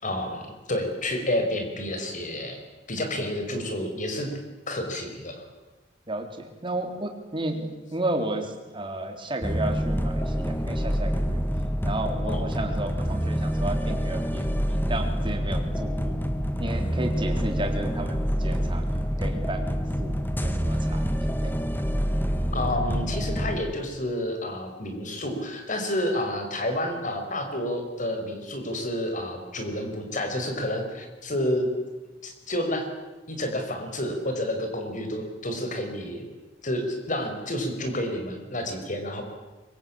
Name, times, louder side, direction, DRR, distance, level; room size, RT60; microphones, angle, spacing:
voice 1, 0.0-2.6 2.9-4.3 4.7-5.4 12.3-12.5 22.5-31.7 32.2-32.9 33.3-36.2 36.6-39.2, left 1 dB, 45° left, 5 dB, 5.0 m, -30 dB
voice 2, 6.1-11.4 11.8-16.2 16.6-18.8 19.2-21.5, right 1 dB, 25° right, 4 dB, 3.6 m, -33 dB
sound 1, 9.4-23.6, equal, 10° left, 1.5 m, -27 dB
24.5 x 23.0 x 8.7 m, 1.2 s
head